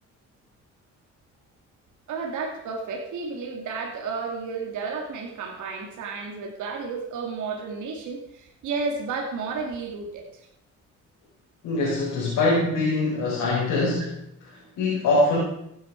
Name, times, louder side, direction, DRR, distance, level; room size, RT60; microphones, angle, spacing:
voice 1, 2.1-10.2, right 4 dB, 80° right, 1 dB, 2.4 m, -32 dB
voice 2, 11.6-14.1 14.4-15.4, left 2 dB, 90° left, -6 dB, 4.1 m, -23 dB
15.0 x 9.0 x 4.6 m, 0.80 s
cardioid pair, 90°, 30 cm